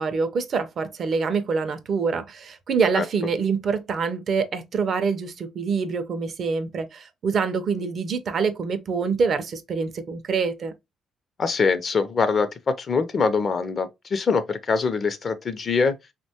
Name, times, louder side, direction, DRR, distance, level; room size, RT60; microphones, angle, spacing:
voice 1, 0.0-10.7, right 5 dB, 55° right, 0.4 m, -25 dB
voice 2, 11.4-15.9, left 4 dB, 45° left, 0.4 m, -23 dB
3.0 x 2.2 x 2.7 m
cardioid pair, 90°, 0 cm